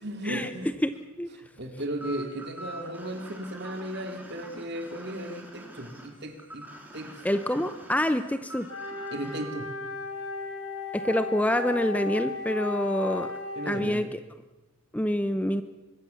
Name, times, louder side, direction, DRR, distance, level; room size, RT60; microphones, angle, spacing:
voice 1, 0.0-0.7 1.4-6.7 6.9-7.2 9.1-9.7 13.6-14.0, right 1 dB, 50° right, 5 dB, 3.1 m, -35 dB
voice 2, 0.8-1.3 7.2-8.7 10.9-13.3 13.7-14.2 14.9-15.6, left 1 dB, 5° left, 10 dB, 0.8 m, -27 dB
sound 1, 2.0-9.4, right 1 dB, 10° right, 3.7 m, -45 dB
Wind instrument woodwind instrument, 8.7-13.9, left 3 dB, 80° left, 5.0 m, -35 dB
24.5 x 21.5 x 7.2 m, 1.1 s
head